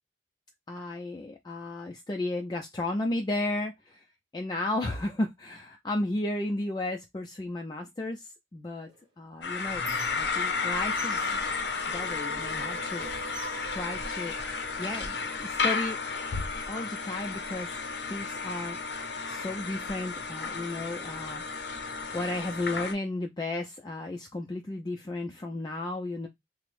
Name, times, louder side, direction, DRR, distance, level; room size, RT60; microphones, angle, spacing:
voice 1, 0.7-4.0 4.3-8.9 9.2-9.8 10.1-11.2 11.9-13.1 13.7-16.0 16.7-17.8 18.1-18.8 19.3-26.3, left 2 dB, 20° left, 0.3 m, -34 dB
Squeak, 8.9-10.7 11.0-12.6 13.0-14.7 15.5-15.6 15.9-17.0, right 3 dB, 25° right, 0.8 m, -48 dB
sound 1, 9.4-22.9, left 4 dB, 70° left, 0.6 m, -33 dB
sound 2, 11.2-17.2, right 4 dB, 65° right, 0.5 m, -46 dB
3.3 x 2.0 x 3.1 m
head